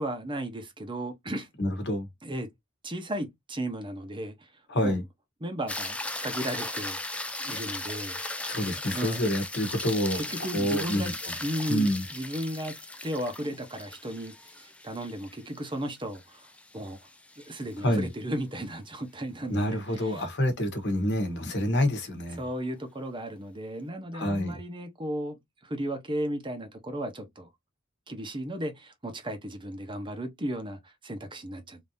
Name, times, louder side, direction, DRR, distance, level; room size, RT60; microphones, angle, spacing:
voice 1, 0.0-1.5 2.2-2.5 2.8-4.5 4.8-5.0 5.4-7.0 7.4-8.2 8.9-9.2 10.1-11.1 11.4-12.7 13.0-17.0 17.4-20.2 22.4-27.5 28.1-31.8, right 1 dB, 25° right, 0.8 m, -35 dB
voice 2, 1.6-2.1 4.7-5.0 8.5-10.2 10.5-11.3 11.7-12.0 17.8-18.1 19.5-22.4 24.1-24.6, equal, 55° left, 1.1 m, -27 dB
sound 1, 5.7-18.1 22.5-22.6, left 2 dB, 5° left, 0.4 m, -37 dB
3.5 x 2.8 x 2.6 m
head